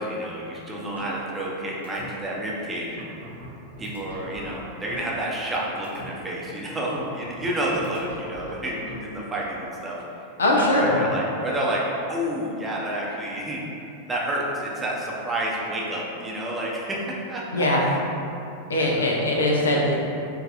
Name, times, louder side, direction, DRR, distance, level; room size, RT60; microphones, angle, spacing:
voice 1, 0.0-3.2 3.8-10.3 10.6-11.8 12.1-13.6 14.1-18.1 18.8-19.1, right 1 dB, 15° right, -5 dB, 0.7 m, -30 dB
sound 1, 1.0-1.6 1.8-2.1 2.6-2.7 3.0-5.6 5.8-6.1 7.0-8.9, equal, 75° right, 0.7 m, -42 dB
voice 2, 10.4-11.0 17.5-17.8 18.7-20.1, left 1 dB, 70° left, -2 dB, 0.5 m, -21 dB
5.2 x 2.6 x 2.5 m, 2.7 s
figure-of-eight pair, 90°, 0 cm